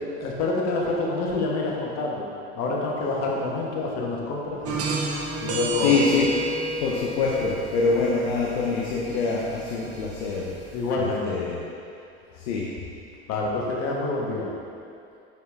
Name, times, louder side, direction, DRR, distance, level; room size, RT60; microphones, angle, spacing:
voice 1, 0.0-2.3 2.6-4.8 5.4-6.0 10.7-11.5 13.3-14.5, left 2 dB, 55° left, -2 dB, 1.5 m, -27 dB
sound 1, 4.6-10.9, equal, 45° right, 1.1 m, -31 dB
voice 2, 5.7-6.3 6.8-10.6 11.0-11.6 12.3-12.7, left 4 dB, 75° left, -4 dB, 0.8 m, -25 dB
6.6 x 6.5 x 3.5 m, 2.5 s
hypercardioid pair, 70°, 33 cm